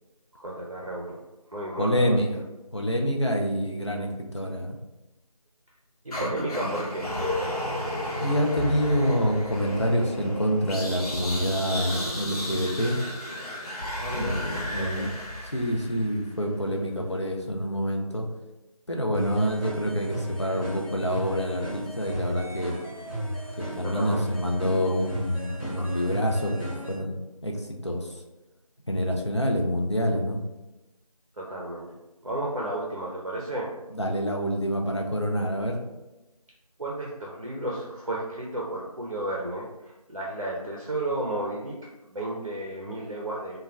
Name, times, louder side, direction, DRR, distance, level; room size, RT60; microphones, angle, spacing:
voice 1, 0.3-1.2 1.5-2.4 6.0-7.1 14.0-15.1 23.8-24.4 25.8-26.0 31.4-31.9 32.2-33.7 36.8-41.8 42.0-43.6, right 1 dB, 60° right, -3 dB, 0.5 m, -33 dB
voice 2, 1.8-2.4 2.7-4.8 8.2-13.0 14.1-15.1 15.5-18.3 18.9-22.7 23.6-28.1 28.9-30.4 33.9-35.8, equal, 50° left, 2 dB, 0.4 m, -27 dB
sound 1, 6.1-16.3, left 1 dB, 80° left, 0.9 m, -33 dB
sound 2, 19.1-27.0, equal, 20° left, 1.3 m, -34 dB
3.1 x 2.2 x 2.3 m, 1.0 s
figure-of-eight pair, 180°, 19 cm